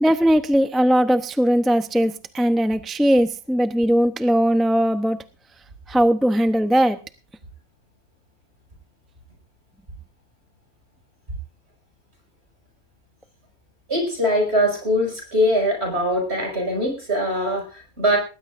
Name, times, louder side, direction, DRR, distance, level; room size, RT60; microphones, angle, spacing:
voice 1, 0.0-5.2 5.9-7.0, equal, ahead, 9 dB, 0.4 m, -19 dB
voice 2, 13.9-18.2, equal, 45° right, 1 dB, 6.1 m, -22 dB
19.5 x 18.0 x 2.6 m, 0.34 s
omnidirectional pair, 1.5 m